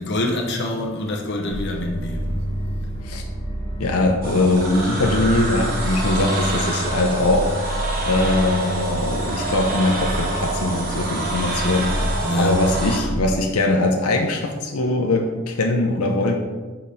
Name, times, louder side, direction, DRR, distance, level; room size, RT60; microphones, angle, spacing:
voice 1, 0.0-2.4 12.2-13.1, left 1 dB, 55° left, 1 dB, 0.9 m, -26 dB
sound 1, 1.5-13.2, equal, 15° left, 1.1 m, -28 dB
voice 2, 3.8-7.5 8.0-12.1 12.3-16.3, left 2 dB, 90° left, 2 dB, 0.7 m, -21 dB
sound 2, 4.2-13.0, right 2 dB, 40° right, 1.1 m, -27 dB
5.8 x 5.0 x 4.2 m, 1.3 s
head